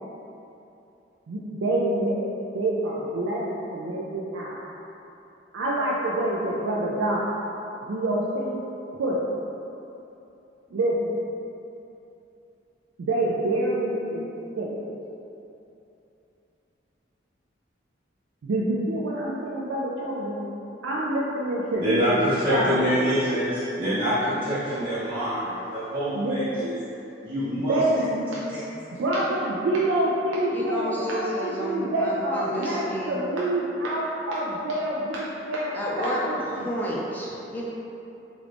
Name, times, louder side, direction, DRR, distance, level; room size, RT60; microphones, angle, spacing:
voice 1, 1.3-2.2 2.5-3.4 3.7-4.6 5.5-7.2 7.9-8.6 9.0-9.3 10.7-11.0 13.0-14.2 14.6-14.8 18.4-20.4 20.8-22.2 22.5-22.8 26.1-26.4 27.7-28.4 29.0-36.7, right 1 dB, 90° right, -6 dB, 0.4 m, -26 dB
voice 2, 21.8-26.8 27.2-27.8 28.5-28.6 28.9-29.0, equal, 40° right, -15 dB, 0.8 m, -26 dB
voice 3, 30.5-33.2 35.7-36.2 36.5-37.6, equal, 10° left, -6 dB, 0.4 m, -31 dB
3.1 x 2.4 x 3.3 m, 2.8 s
head